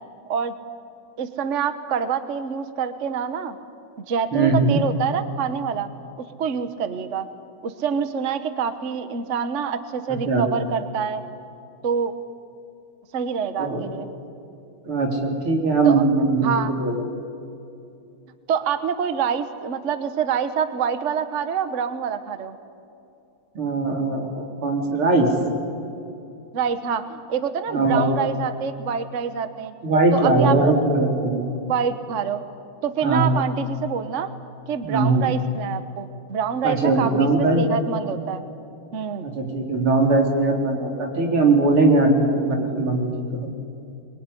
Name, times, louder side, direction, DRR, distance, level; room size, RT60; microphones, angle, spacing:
voice 1, 1.2-3.6 4.1-5.9 6.2-7.3 7.6-11.2 11.8-12.1 13.1-14.1 15.8-16.0 16.4-16.7 18.5-22.6 26.5-29.7 30.1-30.7 31.7-32.4 32.8-34.3 34.7-38.4 38.9-39.3, right 7 dB, 40° right, 10 dB, 1.2 m, -26 dB
voice 2, 4.3-4.8 10.3-10.4 13.6-13.8 14.9-17.0 23.5-25.3 27.7-28.1 29.8-31.5 33.0-33.3 34.8-35.3 36.6-37.6 39.2-43.1 43.4-43.5, right 3 dB, 90° right, 1 dB, 4.4 m, -20 dB
24.0 x 22.5 x 10.0 m, 2.6 s
omnidirectional pair, 2.3 m